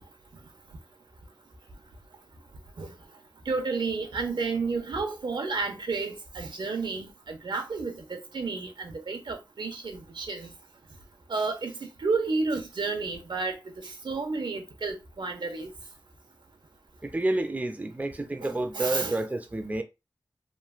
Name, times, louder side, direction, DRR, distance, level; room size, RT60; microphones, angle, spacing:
voice 1, 3.5-10.5 11.3-11.7 12.0-13.5 14.0-15.7 18.4-19.2, right 4 dB, 75° right, 0.7 m, -31 dB
voice 2, 17.0-19.8, right 2 dB, 20° right, 0.4 m, -29 dB
3.1 x 2.4 x 2.3 m
wide cardioid pair, 60°, 8 cm